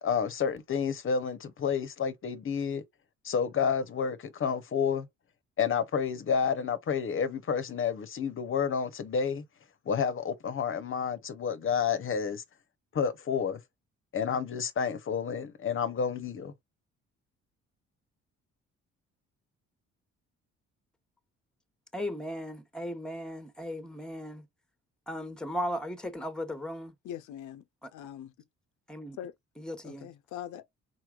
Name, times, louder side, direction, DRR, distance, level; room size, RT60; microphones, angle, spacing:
voice 1, 0.0-2.8 3.2-5.1 5.6-9.4 9.9-12.4 12.9-13.6 14.1-16.5, left 6 dB, 45° left, 0.7 m, -30 dB
voice 2, 21.9-24.5 25.1-26.9 27.8-27.9 28.9-29.2 29.6-30.1, equal, 5° left, 0.9 m, -36 dB
voice 3, 27.0-27.6 27.9-28.3 29.2-29.3 29.8-30.6, left 10 dB, 75° left, 0.5 m, -41 dB
4.6 x 4.1 x 2.3 m
cardioid pair, 90°, 30 cm